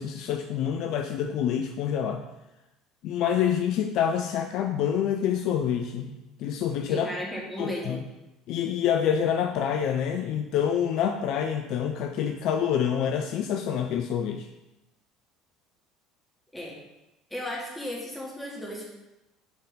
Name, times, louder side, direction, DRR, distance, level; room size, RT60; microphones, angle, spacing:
voice 1, 0.0-2.2 3.0-6.1 6.4-7.1 7.6-8.0 8.5-14.5, left 8 dB, 50° left, 5 dB, 0.3 m, -27 dB
voice 2, 6.9-8.0 16.5-16.8 17.3-18.8, equal, 5° left, -4 dB, 1.8 m, -35 dB
7.0 x 3.6 x 4.0 m, 0.97 s
figure-of-eight pair, 65°, 0 cm